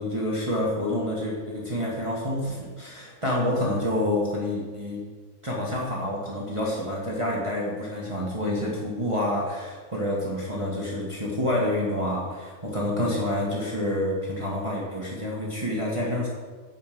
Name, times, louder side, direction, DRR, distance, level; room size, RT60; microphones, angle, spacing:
voice 1, 0.0-5.0 5.4-16.3, left 1 dB, 20° right, -4 dB, 1.8 m, -28 dB
11.0 x 5.6 x 7.7 m, 1.5 s
omnidirectional pair, 1.6 m